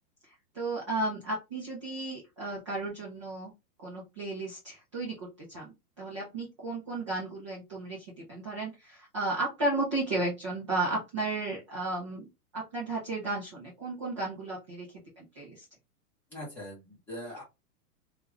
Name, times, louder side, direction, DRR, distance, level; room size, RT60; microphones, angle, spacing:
voice 1, 0.2-3.5 3.8-14.9 15.2-15.7, right 2 dB, 20° right, -6 dB, 0.5 m, -34 dB
voice 2, 16.3-17.4, equal, 5° left, -7 dB, 0.9 m, -41 dB
2.9 x 2.4 x 3.1 m, 0.24 s
supercardioid pair, 175°, 47 cm